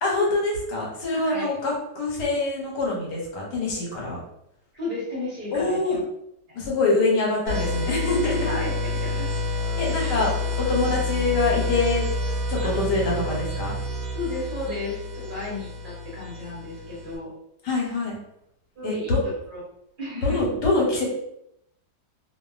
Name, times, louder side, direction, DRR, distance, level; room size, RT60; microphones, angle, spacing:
voice 1, 0.0-4.2 5.5-6.0 6.5-8.5 9.8-10.3 10.7-12.0 12.5-13.7 15.2-15.3 17.6-18.2 18.8-19.2 20.2-21.1, left 2 dB, 80° left, -2 dB, 1.4 m, -24 dB
voice 2, 1.1-1.5 4.7-6.0 6.5-6.6 8.4-9.3 10.0-10.2 12.6-12.7 14.1-17.3 18.8-19.6 20.0-20.4, left 2 dB, 40° right, -6 dB, 0.8 m, -34 dB
sound 1, 7.5-17.2, left 2 dB, 70° right, 1.0 m, -28 dB
2.6 x 2.5 x 2.3 m, 0.78 s
omnidirectional pair, 1.8 m